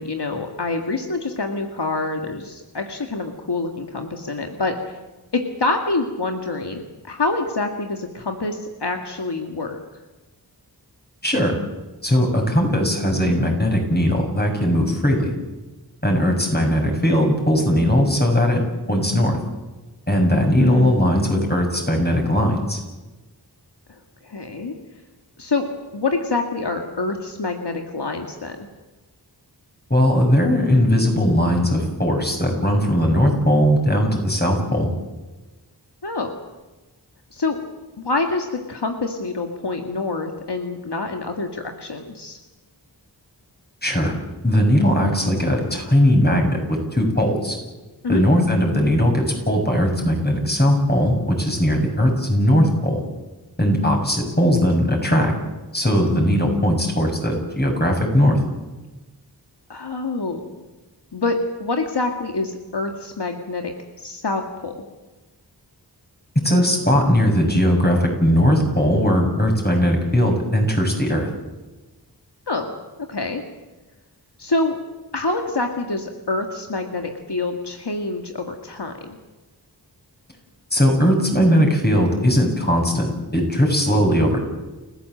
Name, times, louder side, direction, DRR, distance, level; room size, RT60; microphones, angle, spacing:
voice 1, 0.0-5.0 5.3-9.8 20.5-20.9 23.9-24.7 25.4-25.7 25.9-28.6 36.0-36.4 37.3-37.6 38.0-42.4 48.0-48.2 59.7-60.4 61.1-63.7 64.0-64.7 72.5-72.7 73.1-73.4 74.4-74.8 75.1-79.2, left 3 dB, 75° left, 4 dB, 2.1 m, -26 dB
voice 2, 11.2-11.6 12.0-15.3 16.0-18.6 18.9-19.4 20.1-22.8 29.9-34.9 43.8-44.1 44.4-47.6 48.1-53.0 53.6-55.3 55.7-58.4 66.4-71.3 80.7-84.4, equal, 25° left, 2 dB, 7.2 m, -19 dB
30.0 x 15.0 x 7.9 m, 1.1 s
wide cardioid pair, 45°, 41 cm